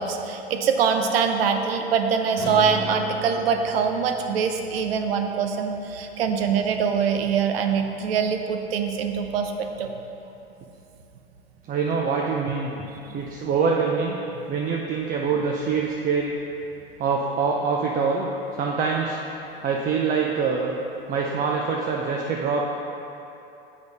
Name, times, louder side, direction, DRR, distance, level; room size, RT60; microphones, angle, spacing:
voice 1, 0.0-9.9 13.1-13.2, right 6 dB, 70° right, 5 dB, 0.7 m, -24 dB
sound 1, 2.4-7.0, left 2 dB, 50° left, 1.2 m, -38 dB
voice 2, 11.7-12.7 13.1-14.2 14.5-16.4 17.0-18.3 18.6-19.2 19.6-20.7 21.1-22.7, right 5 dB, 25° right, -1 dB, 0.6 m, -24 dB
7.8 x 5.2 x 4.1 m, 2.9 s
figure-of-eight pair, 85°, 31 cm